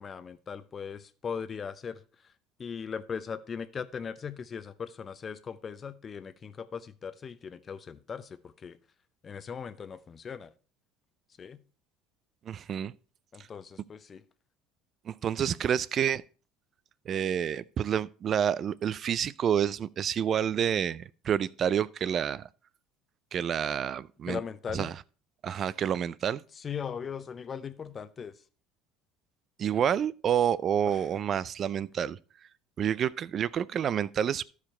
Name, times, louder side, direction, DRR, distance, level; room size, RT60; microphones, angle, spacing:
voice 1, 0.0-2.3 2.6-8.8 9.2-10.5 11.4-11.6 13.3-14.2 24.3-24.9 26.5-28.4 30.9-31.1, left 6 dB, 35° left, 0.7 m, -39 dB
voice 2, 12.5-12.9 15.1-16.2 17.1-22.5 23.3-24.4 24.7-24.9 25.4-26.4 29.6-32.2 32.8-34.4, right 9 dB, 45° right, 0.4 m, -28 dB
13.0 x 4.9 x 4.3 m
supercardioid pair, 95°, 0 cm